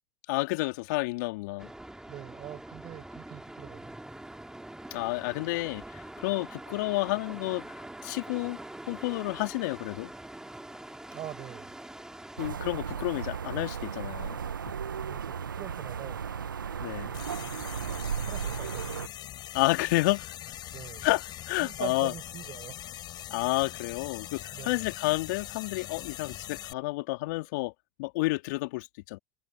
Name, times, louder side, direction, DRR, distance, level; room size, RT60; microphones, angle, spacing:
voice 1, 0.3-1.7 4.9-8.6 8.9-10.1 12.4-14.4 16.8-17.1 19.5-20.3 21.0-22.1 23.3-27.7 28.0-29.2, left 23 dB, 65° left, 2.7 m, -30 dB
sound 1, 1.6-12.5, right 1 dB, 5° right, 3.7 m, -44 dB
voice 2, 2.1-4.0 11.1-11.8 15.0-16.3 18.0-18.9 20.7-21.1 21.6-22.8 24.5-24.9, right 13 dB, 45° right, 7.3 m, -43 dB
sound 2, 12.4-19.1, right 7 dB, 85° right, 1.2 m, -35 dB
sound 3, 17.1-26.7, left 13 dB, 45° left, 5.3 m, -42 dB
hypercardioid pair, 85°, 11 cm